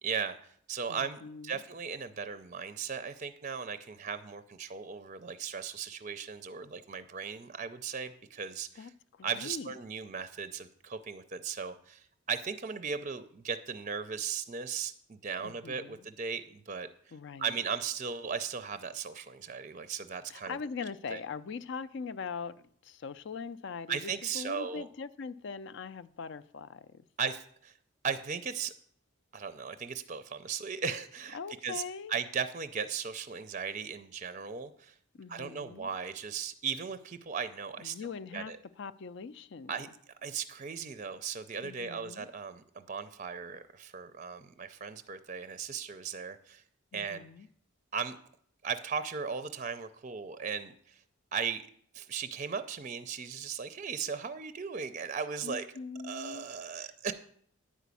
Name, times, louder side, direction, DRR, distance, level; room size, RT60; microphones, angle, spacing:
voice 1, 0.0-8.9 9.2-16.9 17.4-20.6 21.1-21.2 23.9-24.9 27.2-27.7 28.0-28.7 29.3-31.8 32.1-35.0 35.3-38.6 39.7-39.9 40.2-46.6 46.9-47.2 47.9-48.2 48.6-51.0 51.3-51.6 51.9-55.7 56.0-57.1, right 6 dB, 35° right, 0.4 m, -37 dB
voice 2, 0.9-1.6 8.8-9.7 15.4-16.0 17.1-17.6 20.3-27.1 31.3-32.1 35.2-35.9 37.8-38.5 38.8-39.8 41.6-42.3 46.9-47.5 55.4-56.5, left 5 dB, 55° left, 0.4 m, -42 dB
10.0 x 5.0 x 8.2 m
head